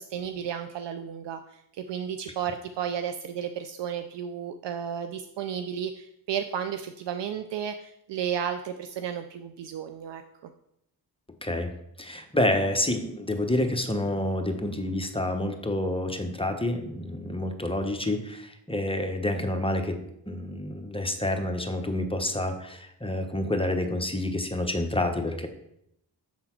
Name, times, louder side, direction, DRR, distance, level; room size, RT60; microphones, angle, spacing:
voice 1, 0.0-10.2, right 8 dB, 70° right, 8 dB, 0.5 m, -33 dB
voice 2, 11.4-11.7 12.0-20.0 20.3-25.5, left 1 dB, 10° left, 5 dB, 0.8 m, -28 dB
7.1 x 3.8 x 4.4 m, 0.77 s
cardioid pair, 60°, 45 cm